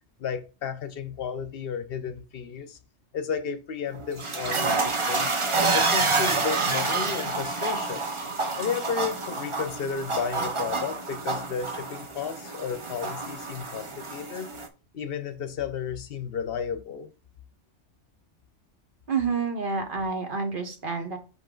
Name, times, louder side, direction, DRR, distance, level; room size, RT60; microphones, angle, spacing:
voice 1, 0.2-2.8 3.1-5.3 5.7-8.0 8.6-14.6 14.9-17.1, left 6 dB, 60° left, 0.8 m, -33 dB
sound 1, 3.9-14.7, right 3 dB, 30° right, 0.7 m, -28 dB
voice 2, 19.1-21.2, right 5 dB, 45° right, 1.2 m, -28 dB
5.5 x 5.3 x 3.8 m
omnidirectional pair, 1.3 m